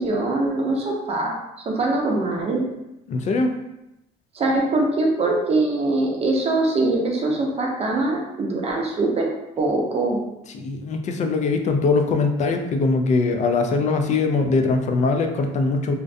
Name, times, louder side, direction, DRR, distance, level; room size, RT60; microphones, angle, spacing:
voice 1, 0.0-1.4 1.7-2.6 4.3-9.3 9.6-10.2, right 2 dB, 35° right, -1 dB, 0.6 m, -22 dB
voice 2, 3.1-3.5 10.5-15.9, left 3 dB, 40° left, 5 dB, 0.4 m, -21 dB
2.5 x 2.1 x 2.5 m, 0.90 s
cardioid pair, 100°, 18 cm